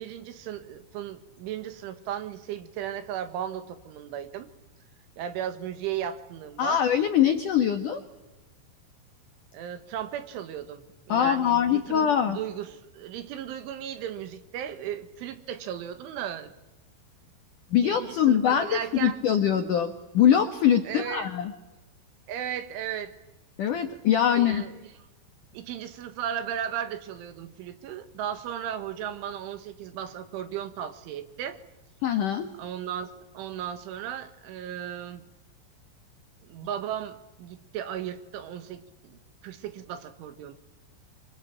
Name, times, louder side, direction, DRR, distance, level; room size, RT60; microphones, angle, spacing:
voice 1, 0.0-4.5 5.2-6.8 9.5-16.5 17.8-19.2 20.9-21.3 22.3-23.1 24.4-24.9 25.5-31.6 32.5-35.3 36.4-40.6, right 10 dB, 75° right, 10 dB, 3.8 m, -36 dB
voice 2, 6.6-8.0 11.1-12.4 17.7-21.5 23.6-24.6 32.0-32.5, left 9 dB, 80° left, 7 dB, 1.8 m, -23 dB
25.5 x 25.5 x 8.9 m, 1.0 s
omnidirectional pair, 6.0 m